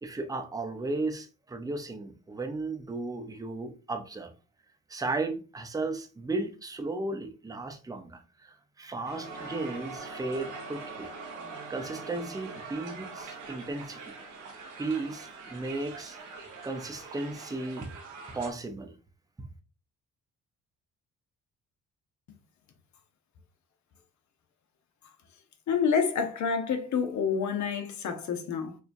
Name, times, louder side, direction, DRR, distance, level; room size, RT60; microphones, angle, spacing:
voice 1, 0.0-4.3 4.9-11.1 11.7-14.1 14.8-16.2 16.6-17.9 18.3-18.9 19.4-19.5, right 2 dB, 10° right, 0.6 m, -35 dB
Crowd, 9.0-18.5, right 4 dB, 80° right, 1.0 m, -43 dB
voice 2, 25.7-28.8, left 6 dB, 70° left, 0.9 m, -28 dB
4.7 x 2.3 x 2.6 m
cardioid pair, 90°, 30 cm